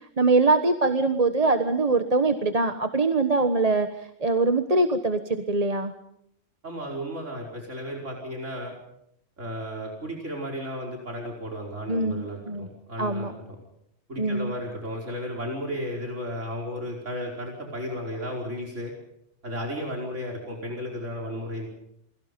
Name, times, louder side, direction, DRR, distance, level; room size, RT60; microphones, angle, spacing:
voice 1, 0.2-5.9 11.9-12.7 13.0-13.3 14.2-14.5, right 3 dB, 30° right, 7 dB, 1.4 m, -23 dB
voice 2, 6.6-8.7 9.4-13.6 14.1-18.9 19.4-21.7, equal, 90° right, 0 dB, 5.4 m, -34 dB
29.5 x 22.5 x 5.3 m, 0.76 s
omnidirectional pair, 1.2 m